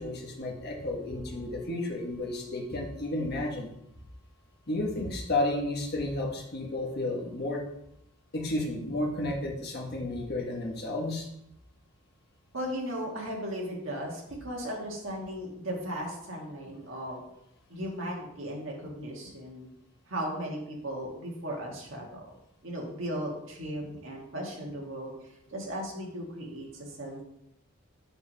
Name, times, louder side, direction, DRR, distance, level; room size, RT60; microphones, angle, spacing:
voice 1, 0.0-3.7 4.7-7.6 8.3-11.2, left 2 dB, 50° left, -1 dB, 1.3 m, -32 dB
voice 2, 12.5-17.2 17.7-19.7 20.1-22.3 22.6-25.1 25.5-27.2, equal, 65° right, -1 dB, 1.7 m, -36 dB
7.0 x 3.3 x 5.4 m, 0.78 s
head